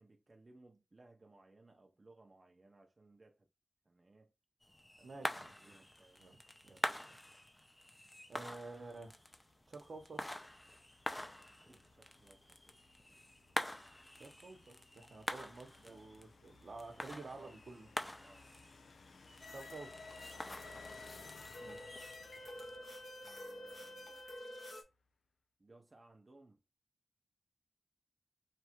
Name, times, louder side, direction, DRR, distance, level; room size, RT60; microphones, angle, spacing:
voice 1, 0.0-3.5 3.8-4.3 5.0-5.3 5.6-6.2 6.6-6.9 11.6-12.8 15.8-16.2 17.1-17.9 18.2-18.5 20.3-20.6 23.2-24.2 25.6-26.6, right 2 dB, 35° right, 0.7 m, -63 dB
sound 1, 4.6-22.8, left 1 dB, 15° left, 0.6 m, -46 dB
voice 2, 5.0-5.9 6.2-7.2 8.3-9.2 9.7-10.4 14.1-17.9 19.5-19.9 21.6-21.8, right 3 dB, 75° right, 1.0 m, -51 dB
sound 2, 8.8-24.7, left 4 dB, 90° left, 0.5 m, -62 dB
sound 3, 19.4-24.8, left 1 dB, 65° left, 1.1 m, -49 dB
3.3 x 2.4 x 4.3 m
wide cardioid pair, 85°, 0 cm